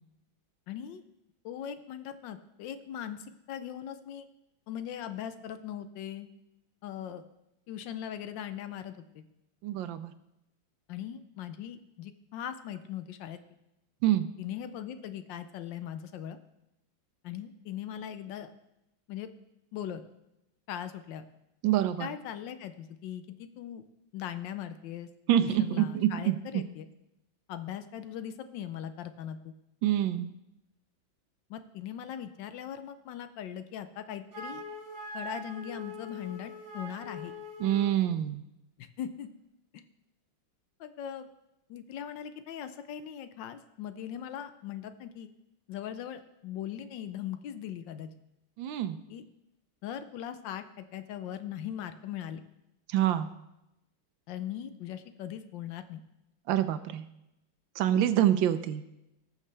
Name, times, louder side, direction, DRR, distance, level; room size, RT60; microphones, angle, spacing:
voice 1, 0.7-1.0 1.4-4.3 4.7-6.3 6.8-7.2 7.7-9.2 10.9-13.4 14.4-16.4 17.2-18.5 19.1-19.3 19.7-20.1 20.7-21.3 22.0-23.9 24.1-25.1 25.4-26.9 27.5-29.5 31.5-34.6 35.1-37.3 38.8-39.3 39.7-39.8 40.8-41.3 41.7-45.3 45.7-48.1 49.1-49.2 49.8-52.4 54.3-56.0, left 10 dB, 75° left, 10 dB, 1.3 m, -40 dB
voice 2, 9.6-10.1 14.0-14.3 21.6-22.1 25.3-26.4 29.8-30.3 37.6-38.4 48.6-49.0 52.9-53.3 56.5-57.1 57.8-58.8, right 11 dB, 75° right, 12 dB, 1.3 m, -26 dB
Wind instrument woodwind instrument, 34.3-38.0, left 1 dB, 35° right, 4.1 m, -42 dB
18.5 x 6.5 x 3.3 m, 0.89 s
omnidirectional pair, 2.2 m